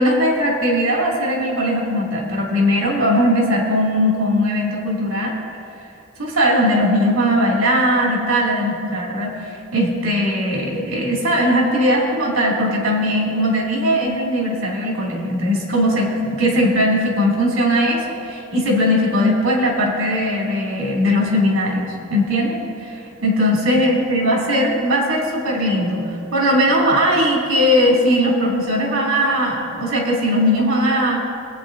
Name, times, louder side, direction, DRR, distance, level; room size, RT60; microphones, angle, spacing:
voice 1, 0.0-5.3 6.2-9.4 9.7-31.2, equal, 85° right, -2 dB, 2.8 m, -19 dB
23.0 x 8.5 x 2.7 m, 2.5 s
head